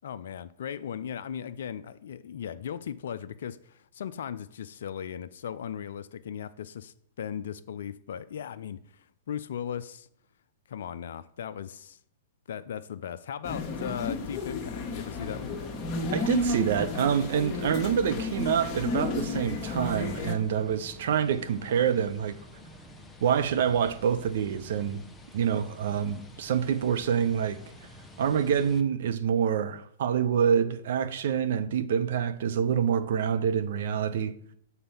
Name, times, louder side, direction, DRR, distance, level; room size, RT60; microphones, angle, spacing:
voice 1, 0.0-10.1 10.7-12.0 12.5-15.5, left 8 dB, 65° left, 0.4 m, -37 dB
sound 1, 13.4-20.3, left 3 dB, 30° left, 1.2 m, -32 dB
sound 2, 15.1-28.8, left 1 dB, 10° left, 0.8 m, -49 dB
voice 2, 16.1-22.4 23.2-25.0 25.3-27.6 28.2-34.3, right 8 dB, 60° right, 0.6 m, -26 dB
6.9 x 4.2 x 5.4 m
hypercardioid pair, 110°, 0 cm